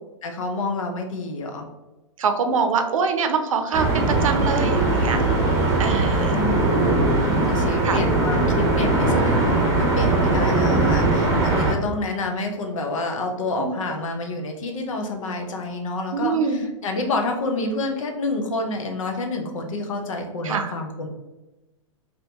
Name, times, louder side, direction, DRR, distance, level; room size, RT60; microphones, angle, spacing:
voice 1, 0.2-1.7 5.0-5.7 6.0-21.1, left 2 dB, 75° left, 3 dB, 0.8 m, -28 dB
voice 2, 2.2-5.2 5.8-6.3 7.8-8.0 13.6-13.8 16.1-16.6 20.4-20.7, right 5 dB, 80° right, 7 dB, 0.6 m, -24 dB
sound 1, 3.7-11.7, right 2 dB, 20° right, 0.9 m, -20 dB
2.7 x 2.7 x 3.4 m, 1.0 s
hypercardioid pair, 120°, 17 cm